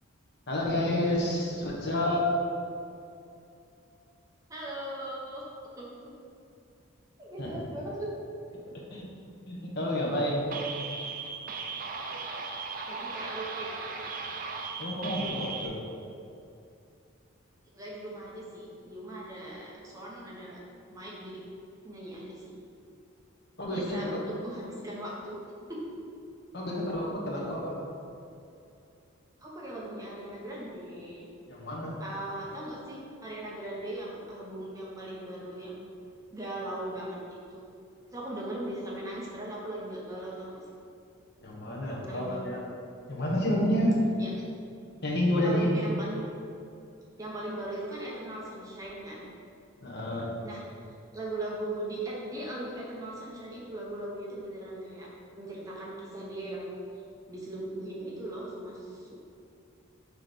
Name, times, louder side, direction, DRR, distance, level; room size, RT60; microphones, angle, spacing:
voice 1, 0.5-2.3 7.4-7.6 8.9-9.1 9.5-10.5 14.8-15.8 23.6-24.2 26.5-27.7 31.5-31.9 41.4-42.6 43.1-44.0 45.0-45.8 49.8-50.3, left 1 dB, 50° left, -3 dB, 1.1 m, -29 dB
voice 2, 4.5-5.4 5.8-5.9 7.2-8.1 12.9-13.7 17.7-20.6 20.9-21.4 21.8-22.5 23.7-25.4 25.7-25.8 29.4-31.3 32.0-35.9 36.3-37.6 38.1-40.6 41.9-42.5 44.2-44.3 45.4-46.2 47.2-49.3 50.4-50.6 51.1-55.1 55.4-56.8 57.3-59.2, right 1 dB, 15° right, -5 dB, 0.8 m, -39 dB
sound 1, 10.5-15.7, right 4 dB, 40° right, 0.4 m, -37 dB
6.2 x 3.1 x 5.1 m, 2.6 s
head